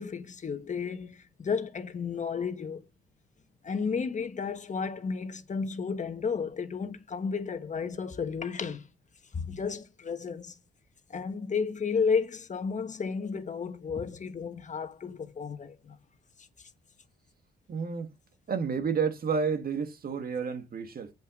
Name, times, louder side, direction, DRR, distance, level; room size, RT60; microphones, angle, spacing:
voice 1, 0.0-2.9 3.6-8.9 9.3-10.6 11.1-16.0, left 5 dB, 40° left, 1.4 m, -32 dB
voice 2, 17.7-18.1 18.5-21.1, right 6 dB, 50° right, 1.8 m, -30 dB
8.2 x 8.0 x 3.8 m
cardioid pair, 90°, 20 cm